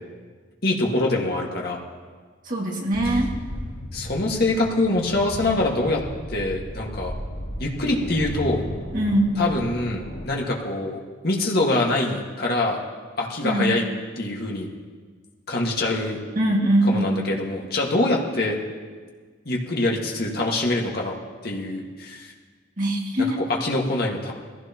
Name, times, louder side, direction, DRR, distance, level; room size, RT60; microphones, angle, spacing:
voice 1, 0.6-1.8 3.9-6.0 6.3-7.1 7.6-8.6 9.4-11.0 11.2-12.8 13.2-13.8 14.2-14.7 15.5-16.2 16.9-18.6 19.5-21.1 21.4-22.3 23.4-24.3, left 2 dB, 55° left, -2 dB, 1.8 m, -24 dB
voice 2, 2.5-3.3 8.9-9.4 13.4-13.7 16.4-17.2 22.8-23.4, right 1 dB, 45° right, -1 dB, 2.1 m, -22 dB
sound 1, 2.9-10.3, equal, 70° left, 3.0 m, -34 dB
20.5 x 15.5 x 3.0 m, 1.5 s
head